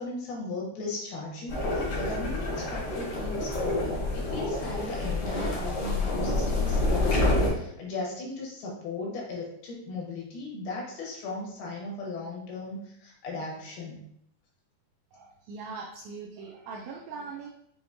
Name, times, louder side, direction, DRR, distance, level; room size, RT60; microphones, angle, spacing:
voice 1, 0.0-14.1, left 2 dB, 75° left, -2 dB, 2.8 m, -37 dB
sound 1, 1.5-7.5, left 2 dB, 55° left, 1.5 m, -28 dB
voice 2, 15.1-17.5, right 4 dB, 85° right, -1 dB, 2.1 m, -41 dB
6.6 x 2.8 x 2.6 m, 0.73 s
omnidirectional pair, 4.5 m